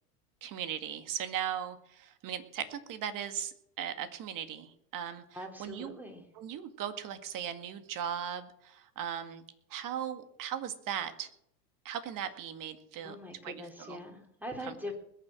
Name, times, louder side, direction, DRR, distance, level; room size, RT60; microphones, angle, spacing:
voice 1, 0.4-5.2 5.6-6.0 6.4-9.4 9.7-11.3 11.8-13.2 13.4-14.0 14.6-14.7, right 9 dB, 40° right, 10 dB, 2.0 m, -38 dB
voice 2, 5.3-6.2 13.0-14.9, left 1 dB, 5° right, 3 dB, 3.5 m, -42 dB
20.5 x 7.3 x 7.5 m, 0.73 s
hypercardioid pair, 95°, 48 cm